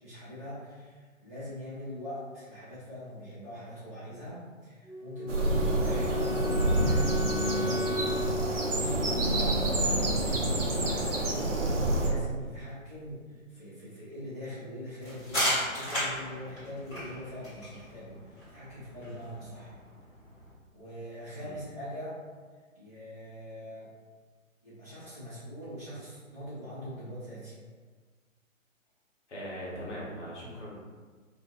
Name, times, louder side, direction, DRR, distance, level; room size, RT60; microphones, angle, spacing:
voice 1, 0.0-7.9 8.2-19.7 20.7-22.2 22.7-23.9 24.6-27.6, left 1 dB, 10° right, -16 dB, 0.7 m, -42 dB
Wind instrument woodwind instrument, 4.9-9.9, left 2 dB, 70° left, 0.8 m, -36 dB
sound 1, 5.3-12.1, right 1 dB, 60° right, 0.8 m, -28 dB
sound 2, 15.0-20.5, equal, 10° left, 1.0 m, -35 dB
voice 2, 29.3-30.8, equal, 55° left, -6 dB, 1.2 m, -40 dB
2.6 x 2.5 x 3.6 m, 1.5 s
figure-of-eight pair, 135°, 41 cm